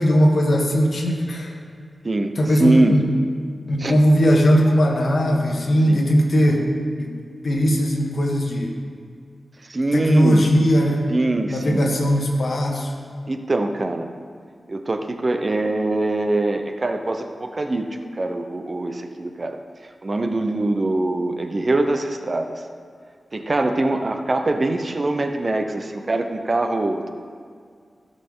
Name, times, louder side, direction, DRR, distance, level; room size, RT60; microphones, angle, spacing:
voice 1, 0.0-1.5 2.4-3.1 3.7-6.7 7.0-7.1 7.4-8.8 9.9-11.1 11.5-12.9, equal, 65° left, 0 dB, 1.6 m, -19 dB
voice 2, 2.0-3.0 3.8-4.0 5.9-6.1 9.6-10.5 11.1-11.9 13.3-14.1 14.7-19.6 20.0-22.7 23.3-27.1, right 2 dB, 40° right, 6 dB, 0.7 m, -23 dB
16.0 x 6.6 x 3.8 m, 2.1 s
wide cardioid pair, 80°, 0 cm